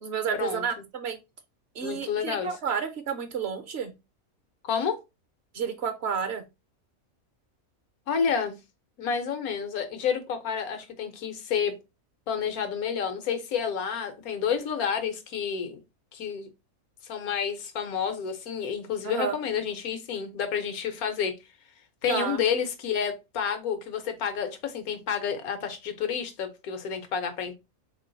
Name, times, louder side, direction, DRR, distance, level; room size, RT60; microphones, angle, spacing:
voice 1, 0.0-1.2 1.7-3.9 5.5-6.4 19.0-19.3 22.1-22.4, right 6 dB, 60° right, 0.8 m, -30 dB
voice 2, 1.8-2.5 4.6-5.0 8.1-8.6 9.0-11.7 12.3-15.8 16.1-16.5 17.1-21.3 22.0-27.5, left 7 dB, 90° left, 1.3 m, -29 dB
3.7 x 3.0 x 3.9 m
omnidirectional pair, 1.5 m